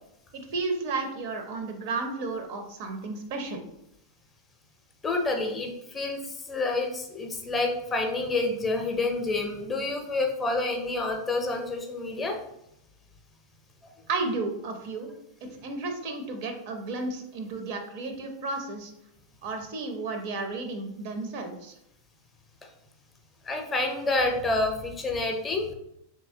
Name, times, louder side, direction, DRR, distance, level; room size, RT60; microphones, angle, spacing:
voice 1, 0.3-3.6 14.1-15.1 15.4-18.9 19.4-21.7, right 3 dB, 50° right, 5 dB, 0.5 m, -33 dB
voice 2, 5.0-12.4 23.5-25.7, left 2 dB, 20° left, 3 dB, 0.5 m, -28 dB
3.1 x 2.6 x 2.6 m, 0.79 s
figure-of-eight pair, 90°, 0 cm